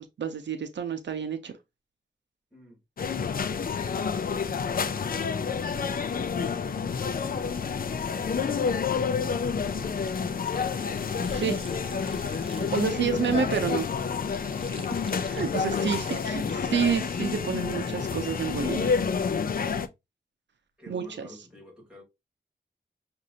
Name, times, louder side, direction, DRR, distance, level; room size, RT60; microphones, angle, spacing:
voice 1, 0.2-1.5 11.3-11.6 12.6-13.9 15.3-18.9 20.9-21.3, right 7 dB, 90° right, 0.7 m, -29 dB
sound 1, 3.0-19.9, left 6 dB, 55° left, 0.5 m, -29 dB
sound 2, 10.0-17.7, right 3 dB, 30° right, 0.7 m, -49 dB
voice 2, 20.8-22.0, equal, 5° right, 2.4 m, -51 dB
6.2 x 2.6 x 2.7 m
wide cardioid pair, 125°, 18 cm